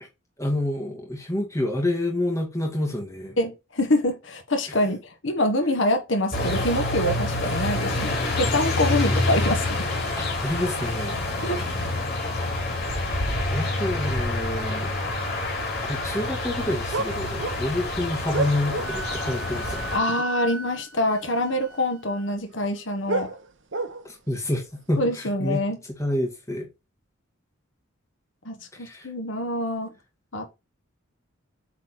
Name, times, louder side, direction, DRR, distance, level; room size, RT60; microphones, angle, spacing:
voice 1, 0.4-3.4 10.2-11.2 13.3-14.9 15.8-19.9 24.0-25.7 26.0-26.7 28.8-29.1, left 1 dB, 15° left, 2.1 m, -28 dB
voice 2, 3.4-9.9 11.4-11.6 19.9-23.3 25.0-25.8 28.4-29.9 30.3-30.5, left 1 dB, 70° left, 1.6 m, -25 dB
sound 1, 6.3-20.0, left 2 dB, 55° left, 3.1 m, -27 dB
sound 2, 16.9-19.2 19.4-19.6 20.7-20.8 21.0-21.3 22.5-24.3 24.9-25.0, right 3 dB, 70° right, 1.0 m, -31 dB
Wind instrument woodwind instrument, 18.8-22.3, right 3 dB, 50° right, 2.2 m, -37 dB
8.1 x 4.3 x 4.4 m
head